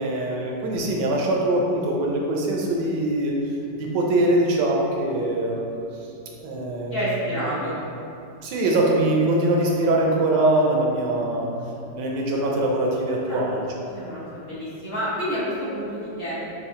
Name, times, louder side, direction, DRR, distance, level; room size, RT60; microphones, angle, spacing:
voice 1, 0.0-3.3 3.7-5.6 6.4-7.1 7.5-7.6 8.4-11.5 11.9-13.6, right 1 dB, 80° right, -1 dB, 1.3 m, -22 dB
voice 2, 6.9-7.8 13.3-13.4 13.9-16.3, equal, 40° left, -9 dB, 1.1 m, -29 dB
5.2 x 2.5 x 3.7 m, 2.7 s
omnidirectional pair, 1.9 m